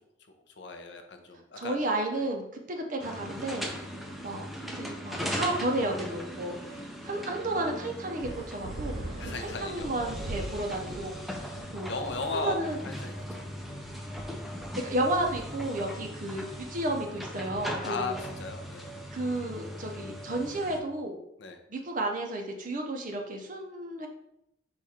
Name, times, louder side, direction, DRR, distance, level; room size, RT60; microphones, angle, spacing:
voice 1, 0.5-1.8 2.2-2.3 4.0-4.1 6.7-7.2 9.2-10.4 11.4-11.5 11.9-12.6 12.8-13.4 17.8-19.0 21.4-21.6, left 3 dB, 60° left, 5 dB, 0.5 m, -37 dB
voice 2, 1.6-3.7 4.2-4.5 4.7-9.0 9.4-11.9 12.4-12.8 14.8-18.1 19.1-21.2 21.7-24.1, right 1 dB, 40° right, 2 dB, 0.6 m, -32 dB
sound 1, 3.0-20.8, equal, ahead, 0.3 m, -39 dB
sound 2, 8.2-18.2, right 1 dB, 85° right, 0.8 m, -43 dB
4.8 x 2.4 x 4.2 m, 0.79 s
head